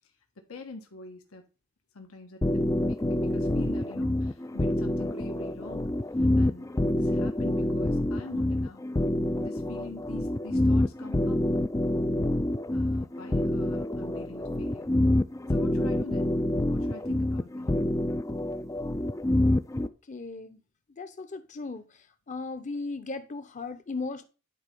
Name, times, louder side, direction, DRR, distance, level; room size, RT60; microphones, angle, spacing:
voice 1, 0.4-1.5 1.9-2.4 2.8-5.9 6.4-8.8 9.4-11.4 12.7-14.9 15.5-16.4 16.7-17.7, left 3 dB, 80° left, 1.4 m, -45 dB
sound 1, 2.4-19.9, left 1 dB, 15° left, 0.4 m, -27 dB
voice 2, 20.1-20.6 21.0-21.8 22.3-24.2, left 3 dB, 35° left, 0.8 m, -36 dB
11.0 x 4.2 x 5.3 m
head